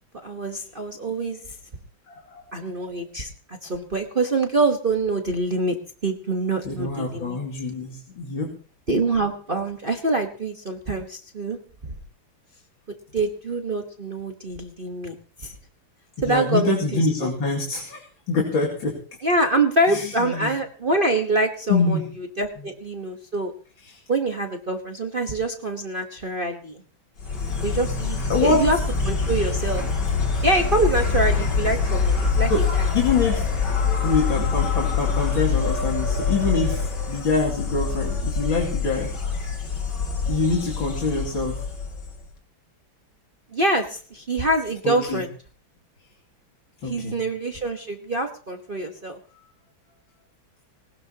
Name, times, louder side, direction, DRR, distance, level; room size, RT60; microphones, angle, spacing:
voice 1, 0.2-1.4 2.5-5.7 6.0-7.4 8.9-11.6 13.1-15.1 15.4-15.5 16.2-17.3 19.2-23.5 24.1-26.8 27.6-28.8 29.0-29.8 30.4-32.9 43.5-45.3 46.8-49.2, right 2 dB, 30° right, 3 dB, 1.2 m, -25 dB
voice 2, 2.1-2.4 6.6-8.6 16.2-19.0 19.9-20.6 21.7-22.1 22.6-22.7 23.8-24.0 28.3-28.6 32.5-32.6 32.9-33.5 34.0-39.1 40.3-41.6 44.8-45.3 46.8-47.2 49.3-49.5, left 4 dB, 85° left, -1 dB, 3.4 m, -25 dB
Insect, 27.2-42.3, left 5 dB, 60° left, 3.2 m, -25 dB
20.5 x 19.0 x 2.9 m, 0.41 s
omnidirectional pair, 2.1 m